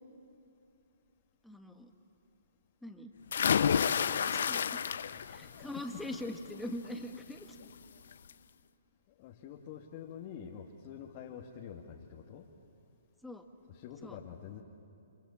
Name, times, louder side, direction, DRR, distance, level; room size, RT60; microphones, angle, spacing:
voice 1, 1.4-1.9 2.8-3.1 4.3-4.8 5.3-7.5 13.2-13.4 14.0-14.2, left 1 dB, ahead, 4 dB, 1.9 m, -42 dB
sound 1, 3.3-5.4 5.8-6.2 7.6-7.7 8.1-8.2, left 7 dB, 70° left, 0.9 m, -29 dB
voice 2, 5.1-5.9 7.5-7.6 9.2-12.5 13.7-14.6, left 8 dB, 40° left, -1 dB, 2.3 m, -47 dB
30.0 x 26.5 x 7.4 m, 2.5 s
hypercardioid pair, 135°, 0 cm